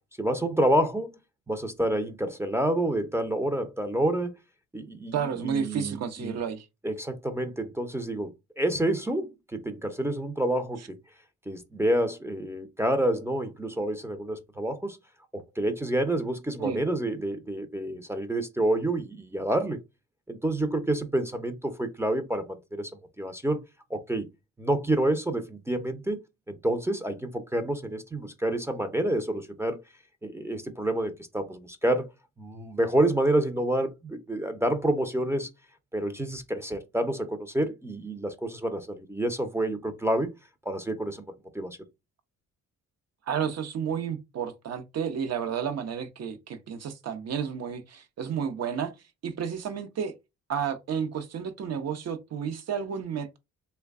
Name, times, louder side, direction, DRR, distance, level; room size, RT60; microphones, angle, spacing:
voice 1, 0.2-1.1 1.5-4.4 4.7-6.3 6.8-8.3 8.6-11.0 11.5-15.0 15.3-19.8 20.3-22.9 23.2-23.6 23.9-24.3 24.6-26.2 26.5-29.8 30.2-32.1 32.4-35.5 35.9-40.3 40.7-41.8, right 1 dB, 10° right, 0.6 m, -28 dB
voice 2, 5.1-6.6 16.6-16.8 43.3-48.9 49.2-50.1 50.5-53.4, right 7 dB, 55° right, 0.8 m, -31 dB
3.2 x 2.2 x 3.5 m
cardioid pair, 90°, 30 cm